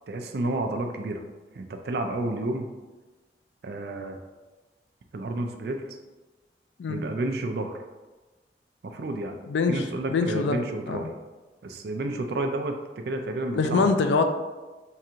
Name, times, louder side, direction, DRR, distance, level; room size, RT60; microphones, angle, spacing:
voice 1, 0.1-1.2 1.5-2.7 3.6-4.2 5.1-6.0 6.9-7.8 8.8-9.4 9.7-11.1 11.6-13.9, right 2 dB, 60° right, 4 dB, 0.4 m, -30 dB
voice 2, 9.5-9.8 10.1-11.0 13.5-14.2, left 4 dB, 80° left, 7 dB, 0.3 m, -24 dB
4.7 x 2.5 x 2.8 m, 1.2 s
head